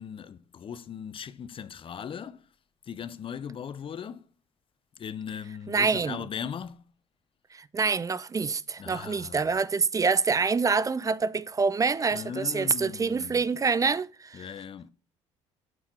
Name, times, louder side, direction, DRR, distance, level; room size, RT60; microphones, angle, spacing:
voice 1, 0.0-2.5 2.8-4.3 5.0-6.9 8.8-9.5 12.1-13.4 14.3-14.9, left 8 dB, 35° left, 0.6 m, -38 dB
voice 2, 5.7-6.2 7.5-14.4, right 5 dB, 20° right, 0.5 m, -26 dB
6.2 x 5.6 x 5.8 m
figure-of-eight pair, 50°, 16 cm